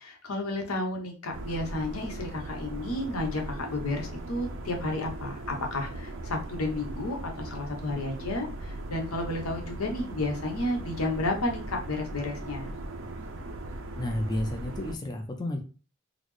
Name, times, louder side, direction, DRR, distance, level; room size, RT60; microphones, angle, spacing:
voice 1, 0.0-12.7, left 2 dB, 85° left, 2 dB, 0.9 m, -32 dB
sound 1, 1.3-15.0, right 2 dB, 60° right, 0.5 m, -39 dB
voice 2, 14.0-15.6, left 1 dB, 20° left, 3 dB, 0.4 m, -31 dB
4.0 x 2.0 x 3.1 m, 0.36 s
head